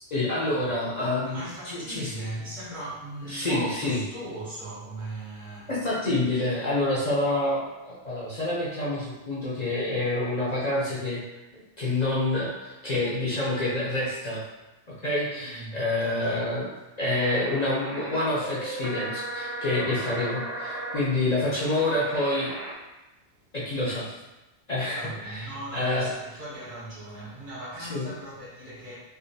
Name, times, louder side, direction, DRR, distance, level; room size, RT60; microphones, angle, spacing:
voice 1, 0.1-2.1 3.3-4.0 5.7-11.2 11.8-14.4 14.9-16.7 17.0-22.5 23.5-24.1 24.7-26.1 27.8-28.1, left 2 dB, 50° left, -7 dB, 0.6 m, -27 dB
voice 2, 1.2-5.7 15.4-16.5 24.9-29.0, right 1 dB, 70° right, -9 dB, 1.3 m, -38 dB
sound 1, 17.0-22.7, right 1 dB, 45° right, 0.4 m, -37 dB
3.3 x 2.1 x 2.6 m, 1.0 s
omnidirectional pair, 1.2 m